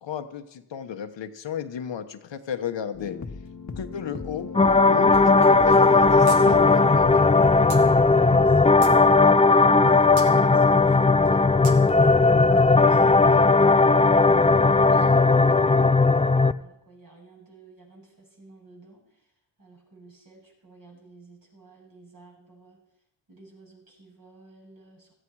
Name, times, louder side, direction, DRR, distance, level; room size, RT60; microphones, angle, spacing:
voice 1, 0.0-3.2 3.8-4.5 4.9-7.2, left 8 dB, 70° left, 8 dB, 1.2 m, -34 dB
sound 1, 2.9-8.5, left 4 dB, 40° left, 1.4 m, -36 dB
sound 2, 4.5-16.5, left 3 dB, 15° left, 0.5 m, -17 dB
sound 3, 6.3-6.4 6.7-6.8 7.7-7.8 8.4-9.0 10.2-10.3 11.6-11.8, right 4 dB, 90° right, 2.1 m, -37 dB
voice 2, 8.2-9.5 9.9-10.1 10.4-19.2 19.6-22.8 23.3-25.1, right 2 dB, 50° right, -1 dB, 7.7 m, -52 dB
17.0 x 14.0 x 4.8 m, 0.83 s
cardioid pair, 75°, 45 cm